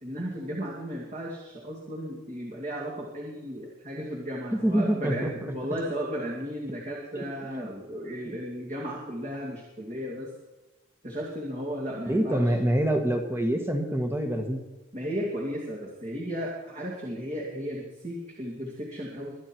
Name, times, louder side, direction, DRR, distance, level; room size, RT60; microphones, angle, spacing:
voice 1, 0.0-10.3 11.0-12.4 14.9-19.4, equal, 35° right, -3 dB, 2.5 m, -35 dB
voice 2, 4.5-5.5 7.1-7.7 8.2-8.4 12.1-14.6, right 1 dB, 10° right, 4 dB, 1.6 m, -26 dB
23.0 x 10.0 x 4.6 m, 1.1 s
head